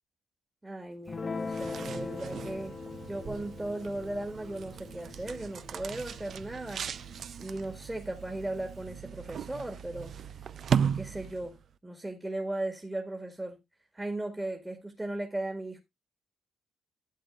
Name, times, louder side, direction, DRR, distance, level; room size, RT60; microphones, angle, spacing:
voice 1, 0.6-2.7 3.0-6.8 7.2-10.1 10.8-13.6 13.9-15.8, right 1 dB, 15° right, 1.8 m, -37 dB
Guitar, 1.1-7.7, left 4 dB, 30° left, 0.7 m, -42 dB
sound 1, 1.3-11.7, right 7 dB, 60° right, 0.5 m, -37 dB
12.0 x 8.1 x 2.4 m
cardioid pair, 90°, 0 cm